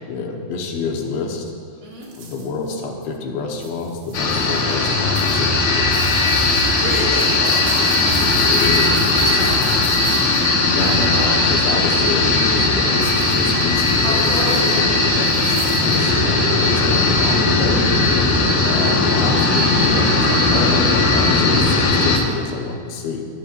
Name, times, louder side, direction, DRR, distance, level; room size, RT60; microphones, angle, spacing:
voice 1, 0.1-1.5 2.2-5.9 7.8-7.9 8.2-9.1 10.6-17.9 18.6-23.2, left 4 dB, 80° left, 1 dB, 3.6 m, -27 dB
sound 1, 2.0-2.7 3.5-4.8 5.1-11.1 13.0-16.0, right 5 dB, 70° right, 4.0 m, -40 dB
sound 2, 4.1-22.2, left 2 dB, 60° left, 2.0 m, -17 dB
voice 2, 6.7-8.0 8.6-8.7 9.1-9.9 14.0-14.9 15.2-15.3 15.8-16.2 18.3-18.8, right 1 dB, 55° right, -4 dB, 4.7 m, -30 dB
25.5 x 12.0 x 2.6 m, 2.1 s
omnidirectional pair, 5.1 m